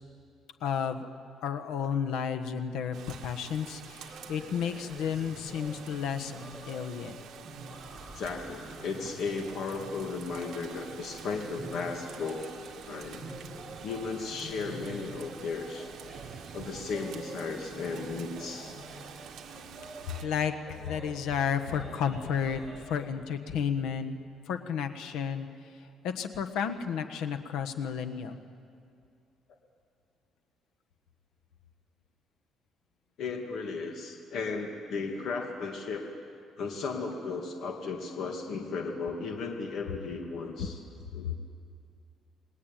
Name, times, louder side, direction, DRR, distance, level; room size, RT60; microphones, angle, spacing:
voice 1, 0.6-1.1 1.4-3.0 3.2-6.3 6.7-7.2 20.2-20.5 20.8-22.6 22.9-24.2 24.5-25.5 26.0-28.4, left 7 dB, 85° left, 7 dB, 1.5 m, -32 dB
Rain, 2.9-20.3, right 8 dB, 60° right, 1.8 m, -48 dB
sound 1, 4.1-23.1, right 1 dB, ahead, 7.2 m, -47 dB
voice 2, 8.1-12.5 12.9-13.2 13.8-15.9 16.5-18.8 33.2-36.1 36.6-40.8 41.1-41.3, left 4 dB, 60° left, 2 dB, 2.5 m, -35 dB
29.0 x 21.0 x 9.2 m, 2.4 s
cardioid pair, 140°, 0 cm